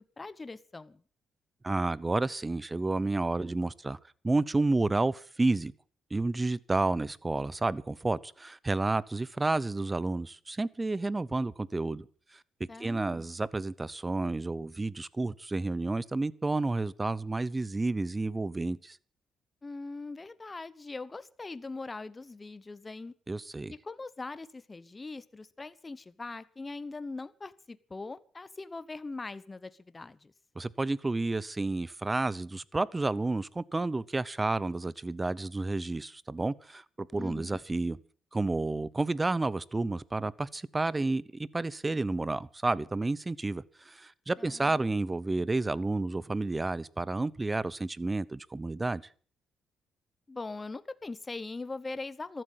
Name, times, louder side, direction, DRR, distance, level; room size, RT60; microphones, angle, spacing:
voice 1, 0.2-1.0 12.7-13.3 19.6-23.1 23.8-30.3 37.2-37.6 44.4-44.9 50.3-52.4, left 3 dB, 25° left, 0.9 m, -41 dB
voice 2, 1.6-4.0 4.2-5.7 6.1-12.1 12.6-19.0 23.3-23.7 30.6-38.0 38.3-49.0, right 2 dB, 20° right, 0.8 m, -30 dB
14.5 x 12.5 x 7.4 m
cardioid pair, 90°, 0 cm